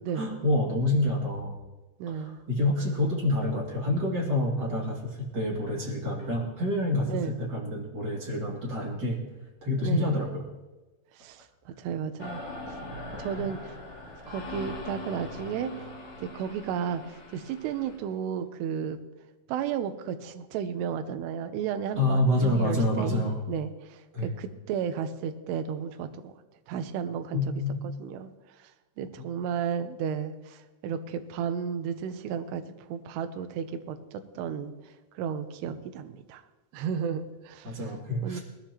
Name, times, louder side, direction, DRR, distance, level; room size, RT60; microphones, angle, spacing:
voice 1, 0.1-1.6 2.1-9.2 9.6-10.4 13.3-13.5 22.0-23.4 24.1-24.3 27.3-27.9 37.6-38.4, left 1 dB, 40° right, -2 dB, 1.6 m, -27 dB
voice 2, 2.0-2.4 7.1-7.4 9.8-10.1 11.2-12.4 12.7-12.8 13.1-13.8 14.3-15.9 16.2-19.0 19.5-26.3 26.7-27.6 28.0-28.3 29.0-32.6 32.9-34.7 35.2-36.4 36.7-37.8 38.2-38.4, right 7 dB, 80° right, 9 dB, 2.5 m, -33 dB
sound 1, 12.2-18.0, left 2 dB, 35° left, 2.7 m, -41 dB
20.0 x 14.0 x 3.0 m, 1.2 s
omnidirectional pair, 5.5 m